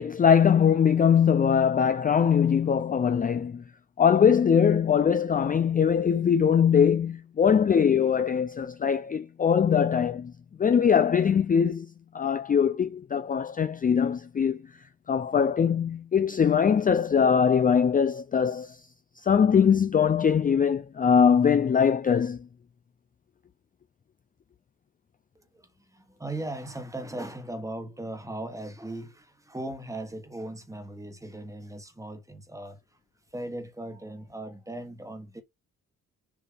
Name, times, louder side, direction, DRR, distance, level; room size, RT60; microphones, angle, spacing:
voice 1, 0.0-3.6 4.0-10.3 10.6-14.6 15.1-18.8 19.2-22.4, left 7 dB, 25° left, 0.4 m, -22 dB
voice 2, 25.3-32.8 33.3-35.4, right 1 dB, 10° right, 1.4 m, -38 dB
7.1 x 2.8 x 5.1 m
cardioid pair, 105°, 32 cm